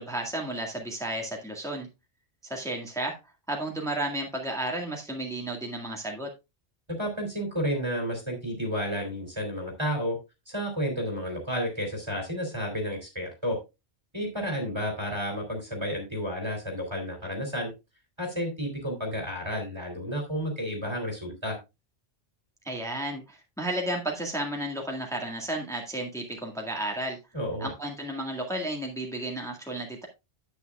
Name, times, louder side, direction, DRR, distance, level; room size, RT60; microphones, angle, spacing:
voice 1, 0.0-1.9 2.4-3.2 3.5-6.3 22.7-27.2 27.6-30.1, right 1 dB, 5° left, 1 dB, 1.8 m, -33 dB
voice 2, 6.9-10.2 10.5-13.6 14.1-17.7 18.2-21.6 27.3-27.7, equal, 25° right, 1 dB, 2.8 m, -31 dB
9.8 x 9.1 x 2.3 m, 0.25 s
omnidirectional pair, 1.2 m